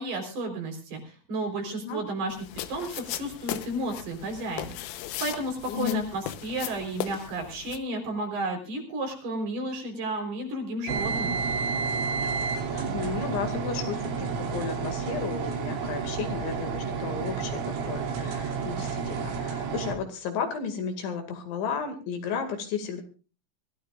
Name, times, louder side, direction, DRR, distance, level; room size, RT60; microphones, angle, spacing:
voice 1, 0.0-2.4 2.7-4.8 5.2-11.4, right 1 dB, 55° right, 3 dB, 5.9 m, -32 dB
sound 1, 2.3-7.8, left 13 dB, 85° left, 3.6 m, -38 dB
voice 2, 5.7-6.0 12.7-23.0, left 6 dB, 70° left, 5 dB, 4.5 m, -33 dB
sound 2, 10.9-19.9, right 5 dB, 85° right, 5.5 m, -30 dB
24.5 x 15.5 x 2.5 m, 0.35 s
omnidirectional pair, 5.8 m